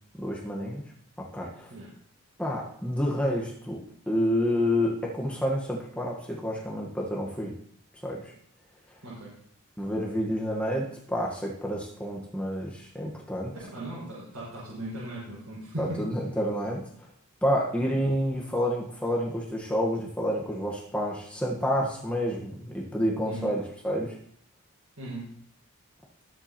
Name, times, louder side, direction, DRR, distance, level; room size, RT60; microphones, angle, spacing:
voice 1, 0.2-0.8 1.2-1.7 2.4-3.8 4.1-7.5 8.0-8.3 9.8-13.5 15.8-16.8 17.4-24.1, equal, 5° left, -2 dB, 1.3 m, -29 dB
voice 2, 13.6-16.0 17.8-17.9 21.7-21.8 23.2-23.5 25.0-25.2, right 1 dB, 80° right, -9 dB, 5.9 m, -38 dB
20.0 x 7.9 x 3.0 m, 0.64 s
head